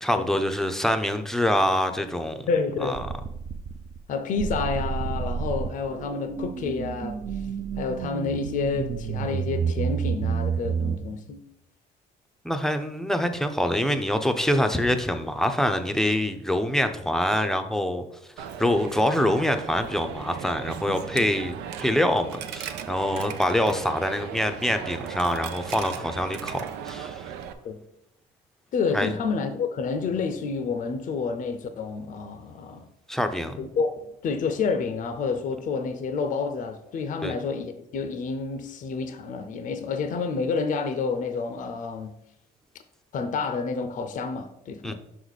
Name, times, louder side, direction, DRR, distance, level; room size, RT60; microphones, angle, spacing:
voice 1, 0.0-2.5 2.8-3.1 12.4-18.0 18.4-26.6 26.8-27.3 28.9-29.1 33.1-33.6 37.2-37.4 44.8-44.9, left 1 dB, 5° left, 0.6 m, -25 dB
voice 2, 2.5-3.0 4.1-7.2 7.8-11.4 27.6-27.9 28.7-32.9 33.6-42.2 43.1-44.9, left 5 dB, 50° left, 0.6 m, -29 dB
sound 1, 3.0-4.0 4.4-11.0, right 7 dB, 40° right, 0.5 m, -30 dB
Coin (dropping), 18.4-27.5, right 9 dB, 90° right, 0.6 m, -37 dB
5.9 x 4.8 x 4.0 m
cardioid pair, 110°, 17 cm